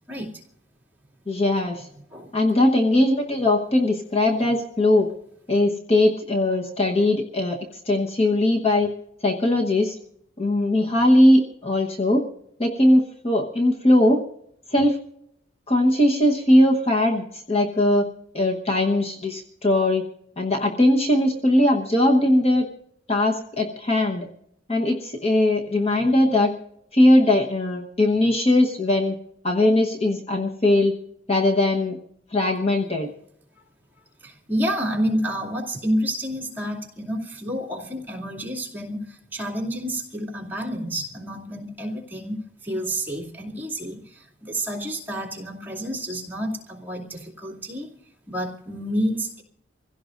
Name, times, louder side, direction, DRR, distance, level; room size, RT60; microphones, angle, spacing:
voice 1, 1.3-1.8 2.3-5.1 5.5-7.6 7.9-8.9 9.2-9.9 10.4-12.2 12.6-14.2 14.7-15.0 15.7-18.1 18.3-20.0 20.4-22.7 23.1-24.3 24.7-26.5 26.9-29.1 29.4-30.9 31.3-32.0 32.3-33.1, left 1 dB, 35° left, 2 dB, 1.2 m, -20 dB
voice 2, 34.2-47.9 48.3-49.4, equal, 10° right, -4 dB, 2.6 m, -29 dB
26.0 x 16.5 x 2.6 m, 0.73 s
head